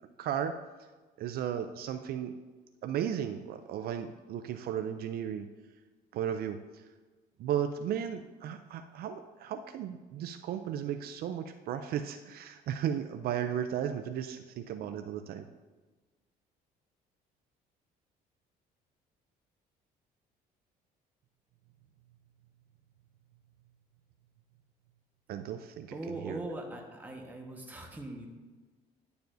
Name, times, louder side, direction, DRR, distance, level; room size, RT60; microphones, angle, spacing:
voice 1, 0.2-0.5 1.2-2.4 2.8-5.5 6.1-6.8 7.4-15.5 25.3-26.4, right 9 dB, 65° right, 8 dB, 0.4 m, -35 dB
voice 2, 25.9-28.3, right 1 dB, 10° right, 0 dB, 1.3 m, -41 dB
10.5 x 6.9 x 2.6 m, 1.3 s
cardioid pair, 110°, 17 cm